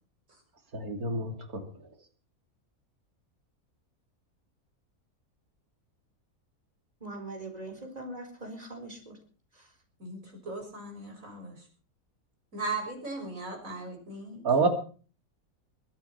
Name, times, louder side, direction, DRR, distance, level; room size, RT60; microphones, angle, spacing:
voice 1, 0.7-1.6 14.4-14.7, right 3 dB, 85° right, 5 dB, 3.2 m, -27 dB
voice 2, 7.0-9.2 9.5-9.7, right 2 dB, 25° right, 4 dB, 4.4 m, -41 dB
voice 3, 10.0-11.6 12.5-14.4, right 3 dB, 65° right, 2 dB, 6.5 m, -38 dB
22.0 x 8.9 x 5.8 m, 0.40 s
omnidirectional pair, 1.5 m